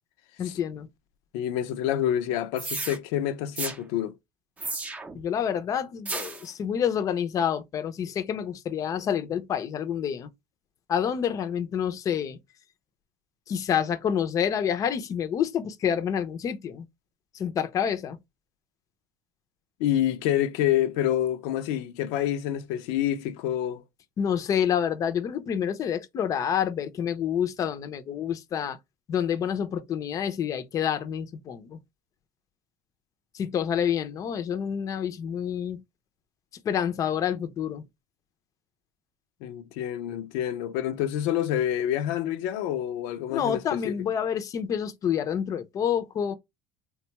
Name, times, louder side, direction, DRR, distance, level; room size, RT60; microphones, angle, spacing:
voice 1, 0.4-0.9 5.1-10.3 10.9-12.4 13.5-16.8 17.3-18.2 24.2-28.8 29.1-31.8 33.3-35.8 36.6-37.9 43.3-46.3, left 8 dB, 35° left, 0.5 m, -28 dB
voice 2, 1.3-4.1 19.8-23.8 39.4-44.0, left 11 dB, 85° left, 0.5 m, -27 dB
sound 1, 2.6-3.0 3.6-3.8 4.6-5.2 6.1-6.5, right 3 dB, 15° right, 0.6 m, -33 dB
3.6 x 2.2 x 2.8 m
cardioid pair, 130°, 9 cm